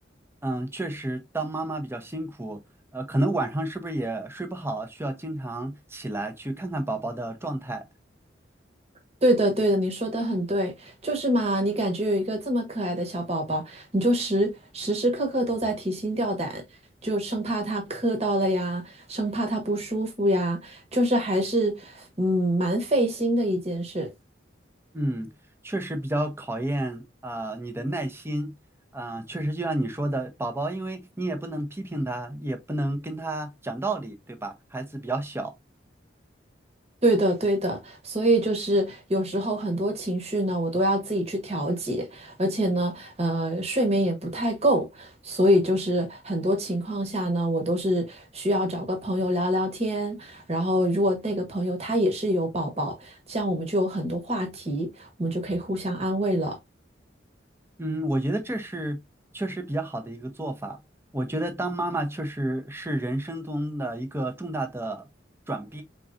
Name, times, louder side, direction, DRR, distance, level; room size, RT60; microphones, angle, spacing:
voice 1, 0.4-2.6 2.9-7.8 24.9-25.3 25.6-28.5 28.9-35.5 57.8-59.0 59.3-60.8 61.1-65.1 65.5-65.8, right 1 dB, 15° right, 0.8 m, -30 dB
voice 2, 9.2-16.6 17.0-24.1 37.0-56.6, right 1 dB, 35° right, 1.3 m, -25 dB
4.6 x 3.7 x 2.6 m
head